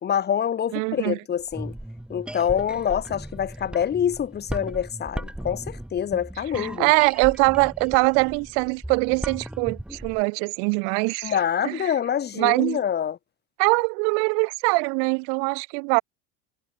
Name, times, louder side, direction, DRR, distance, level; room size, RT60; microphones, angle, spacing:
voice 1, 0.0-1.7 2.1-6.9 11.2-13.2, left 9 dB, 25° left, 2.3 m, -26 dB
voice 2, 0.7-1.2 6.5-11.4 11.6-11.9 12.4-12.8 13.6-16.0, right 40 dB or more, 75° right, 3.0 m, -23 dB
sound 1, 1.4-10.2, right 1 dB, ahead, 4.9 m, -37 dB
cardioid pair, 155°, 37 cm